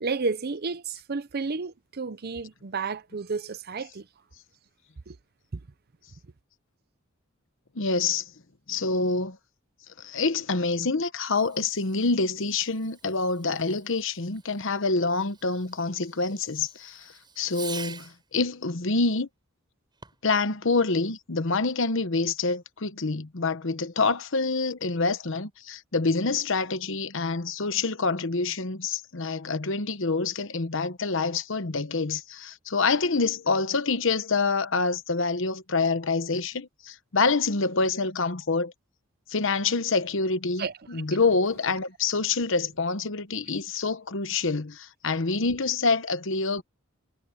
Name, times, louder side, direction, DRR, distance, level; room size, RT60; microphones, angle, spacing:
voice 1, 0.0-4.0 5.1-5.2 40.6-40.7, right 4 dB, 50° right, 0.7 m, -31 dB
voice 2, 7.7-8.2 8.7-9.4 10.0-19.3 20.2-38.7 39.3-46.6, left 4 dB, 65° left, 1.1 m, -26 dB
Fireworks, 11.2-18.3 19.9-20.4, right 5 dB, 20° right, 7.9 m, -47 dB
head